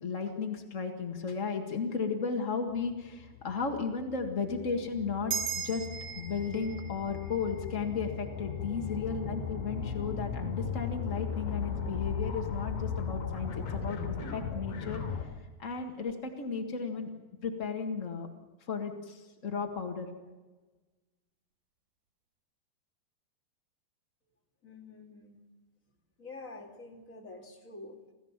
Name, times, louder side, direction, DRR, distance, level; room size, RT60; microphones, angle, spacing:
voice 1, 0.0-5.3 5.6-5.9 6.1-15.0 15.6-17.1 17.4-18.3 18.7-20.1, left 5 dB, 70° left, 3 dB, 0.7 m, -34 dB
sound 1, 2.8-15.3, left 6 dB, 55° left, 4.4 m, -37 dB
sound 2, 5.3-10.0, right 7 dB, 55° right, 3.1 m, -40 dB
voice 2, 24.6-25.4 26.2-28.1, left 3 dB, 25° left, 1 dB, 2.4 m, -47 dB
27.5 x 15.5 x 7.4 m, 1.2 s
omnidirectional pair, 4.7 m